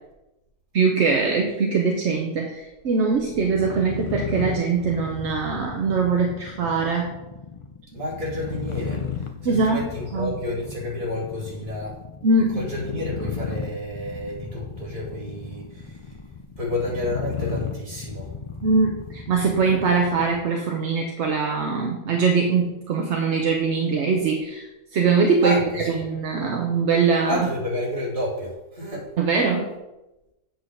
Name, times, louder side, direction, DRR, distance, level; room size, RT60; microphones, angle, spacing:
voice 1, 0.7-7.2 9.4-10.3 12.2-12.7 18.6-27.5 29.2-29.7, right 4 dB, 55° right, 2 dB, 0.9 m, -22 dB
sound 1, 3.3-20.6, left 6 dB, 55° left, 0.3 m, -35 dB
voice 2, 7.9-12.0 12.5-16.1 16.6-18.3 25.4-25.6 25.9-26.0 27.3-29.1, left 1 dB, 30° right, -6 dB, 2.8 m, -30 dB
7.9 x 4.5 x 6.4 m, 0.99 s
omnidirectional pair, 1.6 m